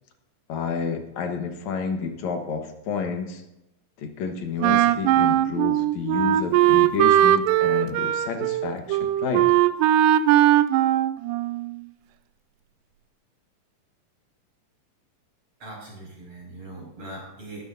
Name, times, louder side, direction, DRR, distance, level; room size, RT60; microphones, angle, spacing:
voice 1, 0.5-3.4 4.0-9.5, left 6 dB, 60° left, 5 dB, 2.3 m, -30 dB
Wind instrument woodwind instrument, 4.6-11.8, right 13 dB, 80° right, 2.1 m, -20 dB
voice 2, 15.6-17.7, right 2 dB, 50° right, -2 dB, 6.8 m, -40 dB
19.5 x 12.5 x 2.7 m, 0.90 s
omnidirectional pair, 4.0 m